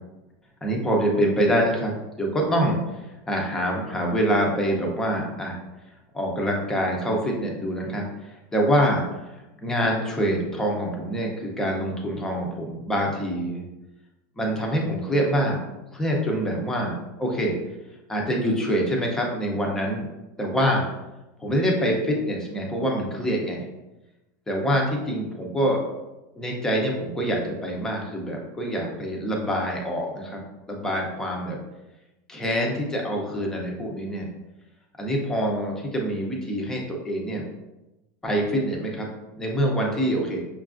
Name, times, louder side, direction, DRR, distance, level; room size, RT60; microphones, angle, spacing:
voice 1, 0.6-3.0 3.3-5.6 6.1-13.6 14.4-15.6 15.9-17.5 18.1-20.1 20.4-20.8 21.4-23.7 24.5-25.8 26.3-31.6 32.3-34.3 35.0-37.4 38.2-39.1 39.4-40.4, equal, 5° left, -1 dB, 0.4 m, -25 dB
5.7 x 2.4 x 2.4 m, 0.99 s
supercardioid pair, 180°, 9 cm